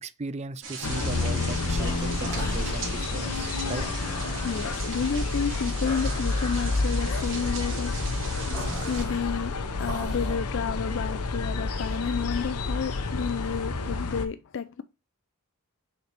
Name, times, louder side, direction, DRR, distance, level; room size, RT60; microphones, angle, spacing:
voice 1, 0.0-3.9, right 3 dB, 30° right, 0.4 m, -37 dB
sound 1, 0.6-9.0, right 5 dB, 60° right, 2.1 m, -39 dB
sound 2, 0.8-14.3, left 3 dB, 90° left, 0.8 m, -29 dB
sound 3, 1.8-10.4, equal, 15° left, 2.4 m, -40 dB
voice 2, 4.4-8.0 8.5-9.5 9.8-14.8, left 6 dB, 55° left, 0.4 m, -31 dB
6.6 x 4.3 x 3.3 m
head